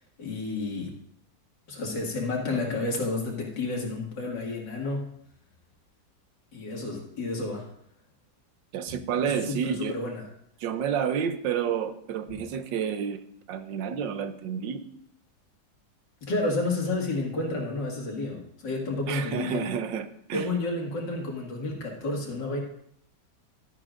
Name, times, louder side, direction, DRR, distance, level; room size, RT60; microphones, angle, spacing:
voice 1, 0.2-0.9 1.7-5.1 6.5-7.7 9.2-10.3 16.2-19.6 20.3-22.6, left 2 dB, 75° left, -1 dB, 2.8 m, -30 dB
voice 2, 8.7-9.9 10.6-13.2 13.5-14.8 19.1-20.5, right 8 dB, 85° right, 10 dB, 1.5 m, -30 dB
12.5 x 10.5 x 2.5 m, 0.69 s
omnidirectional pair, 1.9 m